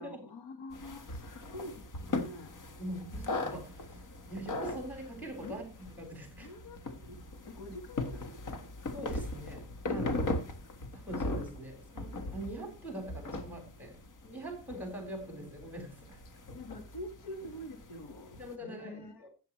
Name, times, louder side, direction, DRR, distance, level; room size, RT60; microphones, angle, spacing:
voice 1, 0.0-2.6 5.4-5.6 6.4-8.9 9.9-10.3 16.5-19.3, left 1 dB, 75° left, 1.5 m, -46 dB
sound 1, 0.7-18.5, left 2 dB, 50° left, 1.5 m, -39 dB
voice 2, 2.8-4.0 4.3-5.6 6.0-6.5 8.9-10.1 10.9-16.2 18.4-19.3, right 1 dB, 5° right, 4.0 m, -43 dB
13.5 x 9.0 x 3.1 m
wide cardioid pair, 170°, 41 cm